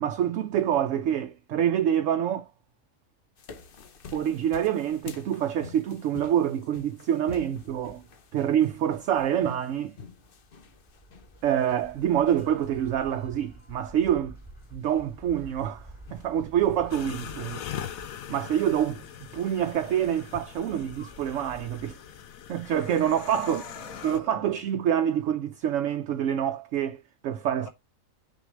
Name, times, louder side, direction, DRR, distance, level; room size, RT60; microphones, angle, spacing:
voice 1, 0.0-2.5 4.1-8.0 8.3-9.9 11.4-14.4 14.7-17.6 18.3-22.0 22.5-23.6 24.0-27.7, right 10 dB, 70° right, 0.9 m, -26 dB
sound 1, 3.4-20.4, left 5 dB, 45° left, 0.9 m, -49 dB
sound 2, 7.3-22.0, right 1 dB, 5° left, 3.1 m, -51 dB
sound 3, 16.9-24.2, left 9 dB, 85° left, 1.2 m, -41 dB
voice 2, 23.3-24.6 27.6-27.7, equal, 25° left, 2.0 m, -44 dB
6.4 x 4.2 x 6.1 m
omnidirectional pair, 1.4 m